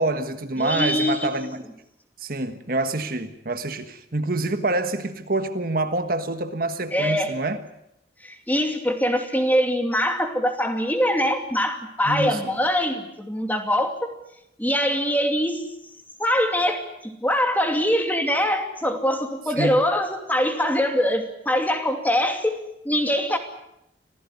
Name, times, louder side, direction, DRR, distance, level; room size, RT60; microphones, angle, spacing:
voice 1, 0.0-1.6 2.2-7.6 12.1-12.4 19.5-19.8, right 2 dB, 50° right, 1.4 m, -26 dB
voice 2, 0.6-1.3 6.9-7.3 8.2-14.1 14.6-15.7 16.2-23.4, equal, 10° left, 2.6 m, -23 dB
26.0 x 16.0 x 9.6 m
head